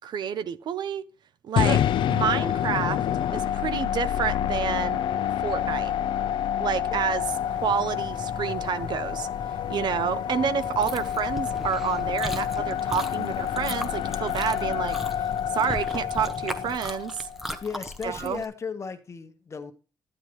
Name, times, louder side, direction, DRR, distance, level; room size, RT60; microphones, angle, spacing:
voice 1, 0.0-1.0 1.4-1.8 2.1-3.0 3.3-5.0 5.4-5.9 6.6-7.2 7.5-9.3 9.7-15.0 15.5-17.3 18.0-18.4, right 8 dB, 60° right, 0.6 m, -29 dB
sound 1, 1.6-17.7, left 10 dB, 75° left, 0.4 m, -28 dB
sound 2, 7.2-16.8, left 6 dB, 60° left, 1.0 m, -41 dB
Chewing mastication, 10.6-18.4, equal, 5° right, 0.8 m, -38 dB
voice 2, 17.6-19.7, left 5 dB, 35° left, 1.1 m, -35 dB
11.5 x 9.9 x 3.1 m
cardioid pair, 120°, 8 cm